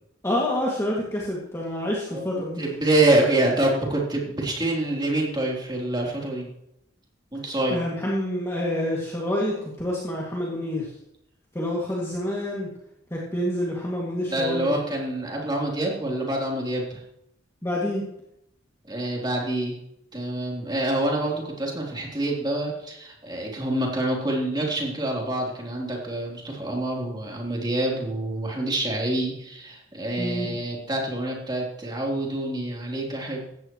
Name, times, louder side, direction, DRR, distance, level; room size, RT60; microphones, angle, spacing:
voice 1, 0.2-2.6 7.7-10.9 11.5-12.7 13.1-14.7 17.6-18.0 30.2-30.6, left 1 dB, 15° left, -5 dB, 2.3 m, -27 dB
voice 2, 2.6-6.5 7.3-7.8 14.3-17.0 18.9-19.8 20.1-33.4, right 1 dB, 20° right, -2 dB, 3.5 m, -26 dB
17.0 x 14.0 x 3.2 m, 0.77 s
head